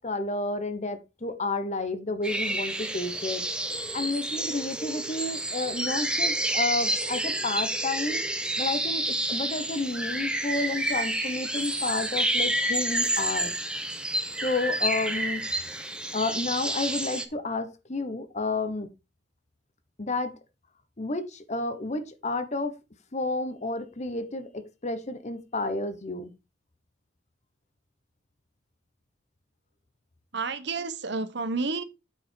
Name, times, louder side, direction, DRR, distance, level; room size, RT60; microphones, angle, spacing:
voice 1, 0.0-3.4 3.9-8.2 8.6-13.6 14.4-15.5 16.1-18.9 20.0-20.4 21.0-22.7 23.1-26.3, left 2 dB, 40° left, 1.1 m, -31 dB
sound 1, 2.2-17.2, right 1 dB, 5° right, 0.9 m, -29 dB
voice 2, 30.3-31.8, right 4 dB, 65° right, 1.1 m, -30 dB
8.9 x 5.1 x 4.6 m
head